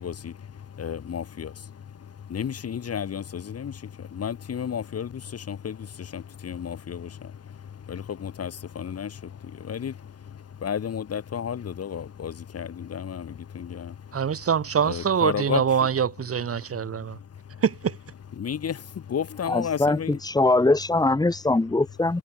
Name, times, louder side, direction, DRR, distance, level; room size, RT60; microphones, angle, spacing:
voice 1, 0.0-14.4 14.8-15.6 17.0-17.6 18.4-20.2, left 8 dB, 55° left, 6.5 m, -33 dB
voice 2, 14.1-17.2 17.6-18.0, right 7 dB, 50° right, 3.9 m, -24 dB
voice 3, 19.4-22.2, left 2 dB, 15° left, 1.5 m, -22 dB
cardioid pair, 90°, 30 cm